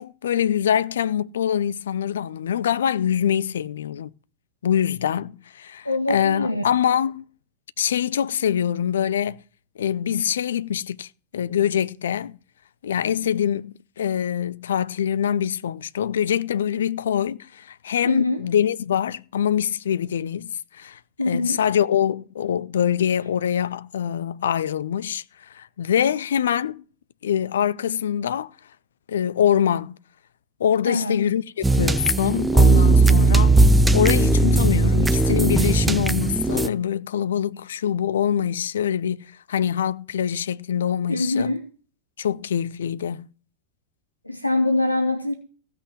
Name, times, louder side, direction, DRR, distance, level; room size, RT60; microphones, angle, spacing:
voice 1, 0.0-4.1 4.6-7.2 7.8-9.4 9.8-11.1 11.3-12.4 12.8-21.0 21.3-25.2 25.5-26.8 27.2-28.5 29.1-30.0 30.6-33.7 33.9-41.6 42.2-43.3, left 9 dB, 65° left, 0.5 m, -24 dB
voice 2, 5.8-6.6 18.0-18.4 21.2-21.6 30.8-31.2 41.1-41.7 44.2-45.3, left 2 dB, 85° left, 1.0 m, -24 dB
sound 1, 31.6-36.7, right 3 dB, 5° right, 0.6 m, -17 dB
15.5 x 5.9 x 7.6 m
figure-of-eight pair, 90°, 0 cm